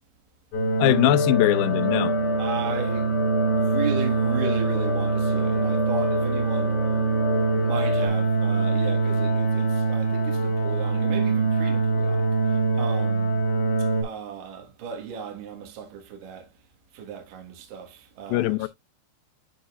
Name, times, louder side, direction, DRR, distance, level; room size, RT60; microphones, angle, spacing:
sound 1, 0.5-14.0, right 4 dB, 60° left, 4.0 m, -24 dB
voice 1, 0.8-2.1 18.3-18.7, left 15 dB, 80° left, 2.2 m, -21 dB
sound 2, 0.8-8.1, left 6 dB, 40° left, 3.0 m, -31 dB
voice 2, 2.4-3.1 3.5-6.8 7.5-13.4 13.8-16.5 16.9-18.7, right 7 dB, 65° right, 3.0 m, -36 dB
12.0 x 4.1 x 2.4 m
omnidirectional pair, 4.4 m